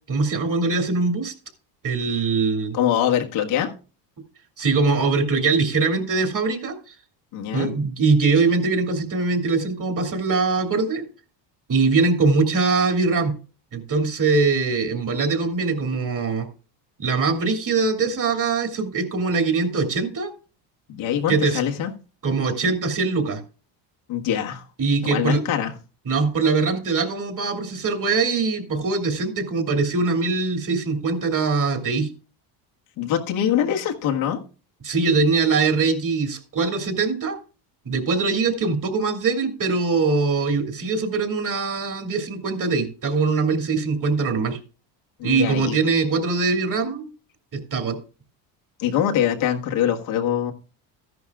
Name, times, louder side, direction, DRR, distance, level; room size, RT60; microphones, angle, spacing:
voice 1, 0.1-1.3 1.8-2.8 4.6-6.9 7.5-11.0 11.7-13.3 13.7-16.5 17.0-20.3 21.3-21.6 22.2-23.4 24.8-25.4 26.0-32.1 34.8-37.4 37.8-44.6 45.2-47.1 47.5-48.0, right 4 dB, 40° right, 4 dB, 2.7 m, -22 dB
voice 2, 2.7-3.7 7.3-7.7 20.9-21.9 24.1-24.6 25.0-25.7 33.0-34.4 45.2-45.8 48.8-50.5, left 10 dB, 70° left, 1 dB, 1.7 m, -23 dB
13.5 x 11.0 x 2.4 m, 0.36 s
supercardioid pair, 90°, 50 cm